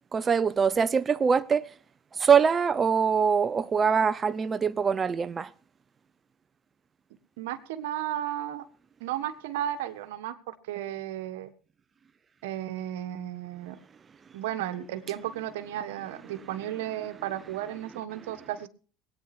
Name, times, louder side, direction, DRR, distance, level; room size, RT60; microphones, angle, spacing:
voice 1, 0.1-1.7 2.1-5.5, right 6 dB, 30° right, 0.6 m, -23 dB
voice 2, 7.4-8.6 9.0-11.5 12.4-13.8 14.3-18.7, right 12 dB, 90° right, 1.4 m, -34 dB
20.5 x 9.2 x 4.3 m
supercardioid pair, 100°, 0 cm